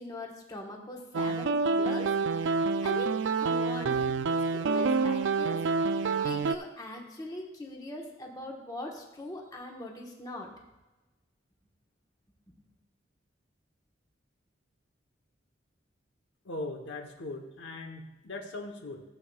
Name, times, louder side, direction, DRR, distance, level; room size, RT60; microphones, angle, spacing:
voice 1, 0.0-10.5, left 1 dB, 20° left, 0 dB, 1.2 m, -41 dB
sound 1, 1.1-6.6, right 4 dB, 75° right, 0.4 m, -27 dB
voice 2, 16.4-19.0, left 2 dB, 75° left, 3 dB, 1.0 m, -39 dB
15.0 x 7.6 x 2.3 m, 1.1 s
head